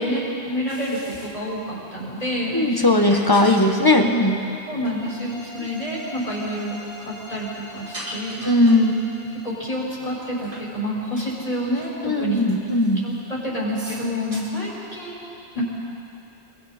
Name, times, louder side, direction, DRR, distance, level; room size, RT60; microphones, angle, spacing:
voice 1, 0.1-2.9 3.9-4.1 4.6-8.4 9.4-12.4 13.0-15.3 15.5-15.7, equal, 35° left, -6 dB, 6.1 m, -28 dB
sound 1, 0.7-1.4 1.7-2.5 3.1-3.7 4.4-5.2 5.7-5.8 6.1-6.2 6.5-6.6 7.1-8.9 9.3-9.4 10.0-10.7 11.0-11.5 11.7-11.9 12.3-13.3 13.7-14.4, right 1 dB, 55° right, 2.6 m, -40 dB
voice 2, 2.5-4.4 5.6-5.8 8.4-9.0 12.0-13.0, left 1 dB, 20° left, 3 dB, 1.6 m, -18 dB
sound 2, 4.8-9.6, left 1 dB, 75° left, 4.4 m, -42 dB
30.0 x 21.5 x 4.5 m, 2.7 s
omnidirectional pair, 1.0 m